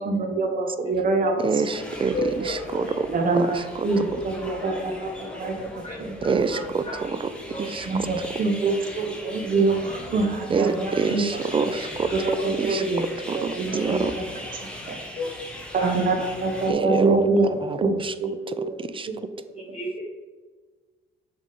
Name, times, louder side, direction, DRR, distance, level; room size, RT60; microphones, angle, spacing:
voice 1, 0.0-1.4 3.1-6.4 7.9-11.7 12.1-14.3 14.9-15.0 15.7-17.5 17.8-17.9 18.2-18.8 19.1-19.2 19.6-19.8, right 3 dB, 45° right, 3 dB, 1.0 m, -25 dB
voice 2, 1.4-3.1 3.3-3.6 4.1-4.2 6.2-7.3 7.6-8.1 10.5-12.1 12.6-12.8 13.3-14.2 16.7-17.3 17.6-18.1 18.5-19.1, right 5 dB, 25° right, 12 dB, 0.5 m, -26 dB
sound 1, 1.7-16.7, equal, 5° left, 1.5 m, -39 dB
voice 3, 2.1-2.5 2.8-3.0 3.4-3.5 5.8-6.0 6.5-7.0 7.5-7.6 15.1-15.3 15.8-15.9 19.7-20.0, left 1 dB, 30° left, -4 dB, 1.7 m, -31 dB
6.6 x 3.7 x 5.0 m, 1.4 s
cardioid pair, 90°, 20 cm